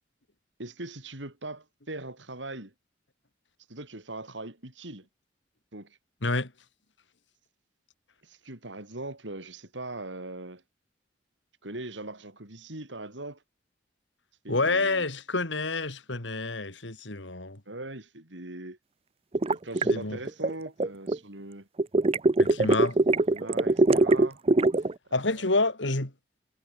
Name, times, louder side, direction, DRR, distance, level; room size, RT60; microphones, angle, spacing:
voice 1, 0.6-2.7 3.7-5.1 5.7-6.0 8.2-10.6 11.6-13.4 14.4-15.1 17.7-18.8 19.5-21.7 23.3-24.4 25.2-25.6, right 2 dB, 90° right, 4.8 m, -40 dB
voice 2, 14.5-17.6 19.8-20.2 22.4-23.0 25.1-26.1, left 3 dB, 85° left, 3.2 m, -28 dB
sound 1, 19.3-21.2 21.8-24.9, right 2 dB, 35° right, 0.6 m, -22 dB
head